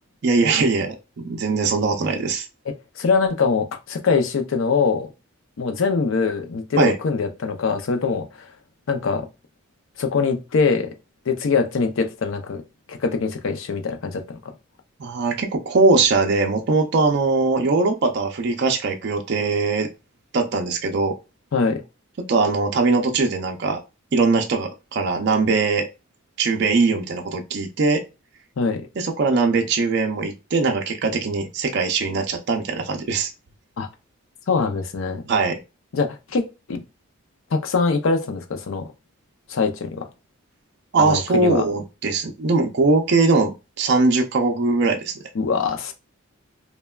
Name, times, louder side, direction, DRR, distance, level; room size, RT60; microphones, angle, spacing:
voice 1, 0.2-1.0 1.2-2.5 6.8-7.0 15.0-19.9 20.3-21.1 22.3-23.8 24.1-25.9 26.4-28.0 29.0-33.3 35.3-35.6 40.9-43.5 43.8-45.1, right 3 dB, 50° right, 0.4 m, -21 dB
voice 2, 2.7-5.1 5.6-8.5 8.9-9.3 10.0-10.9 11.3-12.6 12.9-14.4 21.5-21.8 28.6-28.9 33.8-33.9 34.5-35.2 35.9-36.8 37.5-38.9 39.5-40.1 41.0-41.6 45.3-45.9, left 4 dB, 65° left, 0.5 m, -23 dB
3.2 x 2.1 x 2.2 m
head